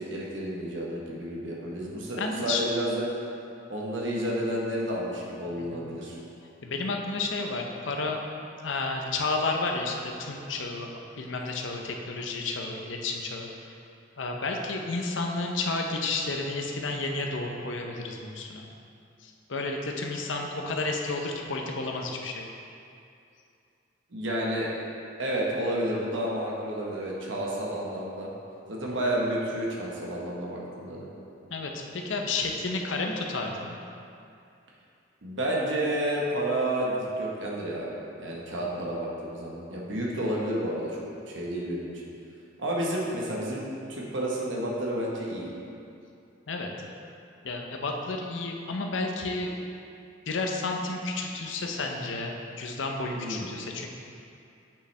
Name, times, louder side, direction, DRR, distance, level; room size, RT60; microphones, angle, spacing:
voice 1, 0.0-3.0 3.7-6.2 24.1-24.7 25.2-28.3 28.7-31.1 35.2-37.9 38.2-41.0 41.3-41.9 42.6-43.6 43.9-45.5 53.1-53.5, right 1 dB, 70° right, -4 dB, 1.1 m, -30 dB
voice 2, 2.2-2.6 5.6-5.8 6.6-8.2 8.6-13.7 14.2-18.7 19.2-22.5 31.5-33.8 39.9-40.0 46.5-46.7 47.4-49.5 50.3-53.9, left 3 dB, 70° left, 2 dB, 0.7 m, -31 dB
8.4 x 5.5 x 3.3 m, 2.5 s
head